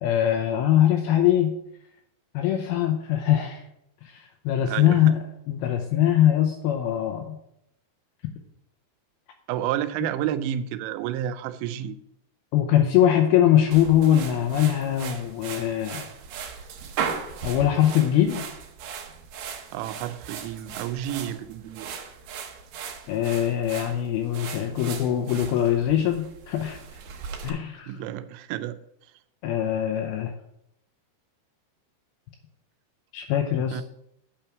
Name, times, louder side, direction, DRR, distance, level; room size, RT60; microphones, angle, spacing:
voice 1, 0.0-1.5 2.3-3.6 4.1-5.2 5.5-7.4 12.5-16.1 17.4-18.4 23.1-26.8 27.4-27.9 29.4-30.3 33.1-33.8, left 11 dB, 85° left, 5 dB, 2.3 m, -22 dB
voice 2, 4.6-5.2 9.5-12.0 19.7-22.0 27.9-28.8 33.7-33.8, right 11 dB, 90° right, 11 dB, 2.9 m, -30 dB
sound 1, 13.7-27.5, right 7 dB, 75° right, 2.1 m, -37 dB
8.9 x 5.8 x 5.9 m, 0.77 s
omnidirectional pair, 5.1 m